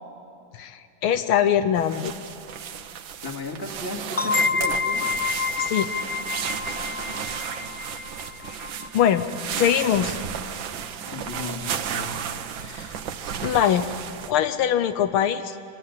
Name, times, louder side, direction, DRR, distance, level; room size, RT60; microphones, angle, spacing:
voice 1, 0.6-2.1 5.6-5.9 8.9-9.3 9.5-10.2 12.6-12.9 13.4-13.9 14.3-15.6, left 9 dB, 80° left, 10 dB, 1.6 m, -22 dB
sound 1, 1.8-14.3, right 8 dB, 65° right, 1.6 m, -33 dB
voice 2, 3.2-5.2 11.1-12.2, left 2 dB, 10° left, 0 dB, 2.5 m, -34 dB
sound 2, 4.2-9.6, left 5 dB, 45° left, 0.4 m, -28 dB
28.0 x 24.0 x 8.4 m, 2.5 s
omnidirectional pair, 2.3 m